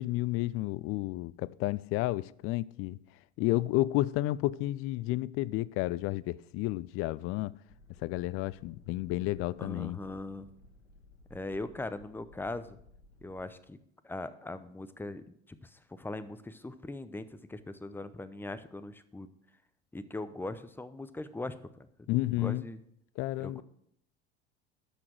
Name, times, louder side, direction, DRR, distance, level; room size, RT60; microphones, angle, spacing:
voice 1, 0.0-3.0 3.4-7.5 8.0-10.0 22.1-22.6 23.2-23.6, left 17 dB, 40° left, 0.4 m, -31 dB
sound 1, 7.7-13.5, left 2 dB, 80° left, 1.5 m, -58 dB
voice 2, 9.6-10.5 11.3-12.8 13.2-13.8 14.0-19.3 19.9-21.9 22.4-22.8 23.4-23.6, left 2 dB, 5° left, 0.7 m, -40 dB
12.0 x 6.0 x 6.1 m
hypercardioid pair, 75°, 34 cm